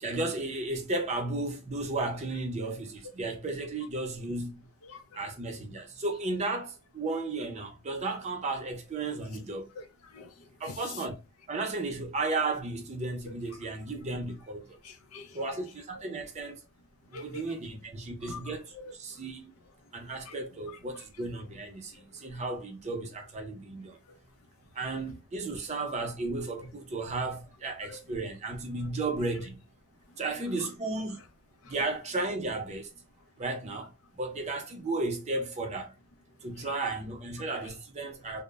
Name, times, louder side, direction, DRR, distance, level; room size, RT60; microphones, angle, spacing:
voice 1, 0.0-4.6 5.1-9.7 10.6-11.1 11.5-14.7 15.3-16.6 17.1-18.7 19.0-19.5 19.9-24.0 24.8-29.6 30.2-31.2 31.7-32.9 33.4-33.9 34.2-35.9 36.4-38.4, right 2 dB, 30° right, 0.5 m, -34 dB
voice 2, 4.8-5.2 9.8-11.0 13.3-13.4 14.8-15.4 17.1-17.4 18.2-19.2 20.2-20.4 21.9-22.0 24.1-24.2 27.8-28.0 31.6-31.7 36.6-36.9, left 4 dB, 80° left, 0.4 m, -46 dB
2.0 x 2.0 x 3.2 m
head